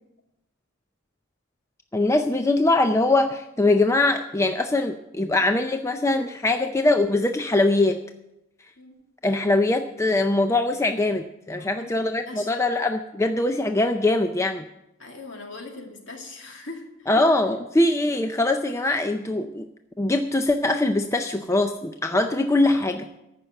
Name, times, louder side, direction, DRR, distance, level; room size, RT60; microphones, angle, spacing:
voice 1, 1.9-8.0 9.2-14.7 17.1-19.7 20.0-23.1, left 2 dB, 15° left, 7 dB, 0.4 m, -22 dB
voice 2, 11.6-12.5 15.0-17.1, left 2 dB, 60° left, 2 dB, 2.4 m, -41 dB
14.5 x 6.0 x 9.0 m, 0.90 s
head